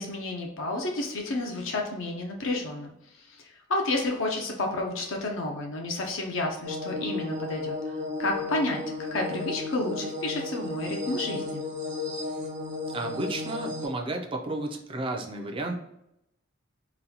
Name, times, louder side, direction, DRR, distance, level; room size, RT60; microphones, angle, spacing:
voice 1, 0.0-11.6, left 2 dB, 65° left, 1 dB, 0.6 m, -31 dB
sound 1, 6.6-13.9, left 3 dB, 70° right, 1.2 m, -34 dB
voice 2, 12.9-15.7, right 2 dB, 25° right, 2 dB, 0.4 m, -32 dB
4.0 x 2.2 x 2.8 m, 0.81 s
head